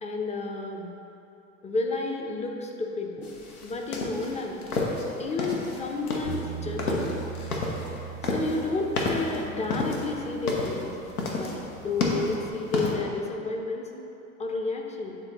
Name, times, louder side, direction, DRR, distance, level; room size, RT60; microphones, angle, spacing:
voice 1, 0.0-0.9 1.6-3.3 3.6-4.7 5.2-7.2 8.2-10.9 11.3-13.9 14.4-15.2, left 3 dB, 15° left, 2 dB, 0.6 m, -31 dB
sound 1, 3.2-12.9, left 2 dB, 85° left, 0.9 m, -30 dB
Bass guitar, 6.2-12.5, right 8 dB, 85° right, 0.8 m, -41 dB
9.0 x 3.8 x 3.0 m, 2.9 s
hypercardioid pair, 80°, 43 cm